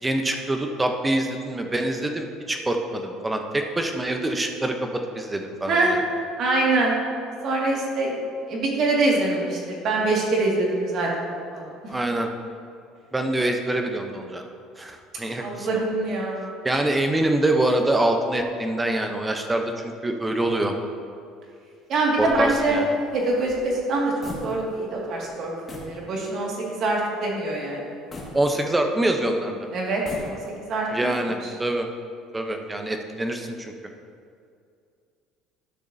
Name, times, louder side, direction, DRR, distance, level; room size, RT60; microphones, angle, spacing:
voice 1, 0.0-6.0 11.9-12.3 13.1-14.5 14.8-15.8 16.6-20.7 22.2-22.9 28.3-29.6 30.9-31.9 32.3-33.7, right 1 dB, 15° right, 4 dB, 0.8 m, -25 dB
voice 2, 6.4-7.0 7.4-8.2 8.5-11.7 15.4-16.5 21.9-22.8 23.1-24.1 24.4-27.8 29.7-30.4 30.7-31.3, right 2 dB, 55° right, -2 dB, 2.1 m, -24 dB
sound 1, 22.1-24.9 25.2-25.3 25.7-26.0 26.5-26.6 28.1-29.1 29.9-30.7, left 1 dB, 25° left, 1.9 m, -40 dB
12.0 x 6.4 x 2.8 m, 2.4 s
cardioid pair, 115°, 0 cm